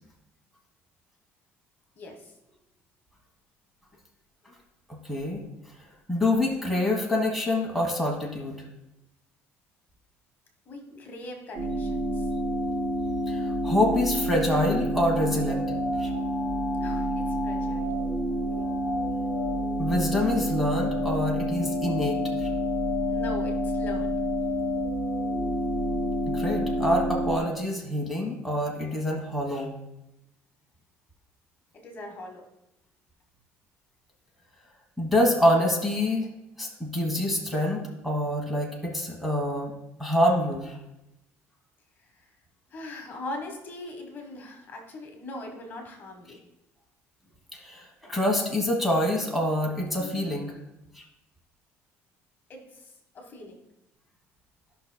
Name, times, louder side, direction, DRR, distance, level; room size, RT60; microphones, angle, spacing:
voice 1, 2.0-2.3 10.7-12.3 16.8-18.0 23.0-24.2 31.7-32.4 42.1-42.3 42.7-46.4 52.5-53.6, left 2 dB, 35° left, 3 dB, 1.3 m, -41 dB
voice 2, 4.9-5.4 6.1-8.6 13.3-15.7 16.0-16.1 19.8-22.5 26.3-29.7 35.0-36.3 36.6-39.7 40.0-40.8 47.5-50.6, left 1 dB, ahead, -1 dB, 1.2 m, -26 dB
sound 1, 11.5-27.4, equal, 55° right, 3.2 m, -28 dB
14.5 x 5.6 x 2.2 m, 0.91 s
cardioid pair, 155°, 5 cm